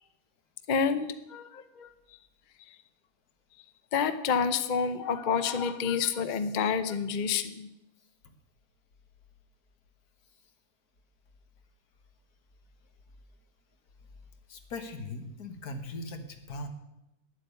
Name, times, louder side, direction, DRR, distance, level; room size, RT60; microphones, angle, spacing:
voice 1, 0.7-1.9 2.7-2.8 3.9-7.7, left 6 dB, 45° left, 11 dB, 0.6 m, -29 dB
voice 2, 14.5-16.7, left 2 dB, 75° left, 7 dB, 1.8 m, -39 dB
11.0 x 8.3 x 8.2 m, 0.91 s
omnidirectional pair, 1.6 m